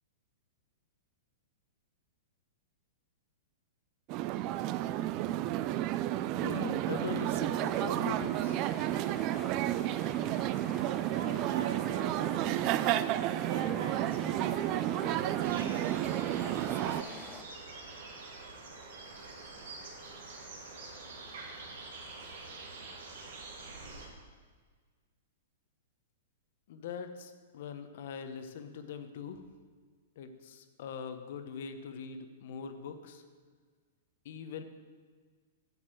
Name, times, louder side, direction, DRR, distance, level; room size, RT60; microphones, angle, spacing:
sound 1, 4.1-17.0, right 14 dB, 35° right, 0.3 m, -31 dB
voice 1, 6.3-8.6 26.7-29.4 30.2-33.2 34.2-34.6, left 6 dB, 60° left, 8 dB, 1.0 m, -42 dB
sound 2, 7.5-17.4, left 3 dB, 10° left, 0.6 m, -48 dB
voice 2, 11.0-13.0 13.5-17.3, right 5 dB, 55° right, 5 dB, 1.5 m, -42 dB
sound 3, 15.4-24.1, right 3 dB, 70° right, 2.2 m, -46 dB
7.9 x 7.3 x 7.7 m, 1.5 s
hypercardioid pair, 155°, 0 cm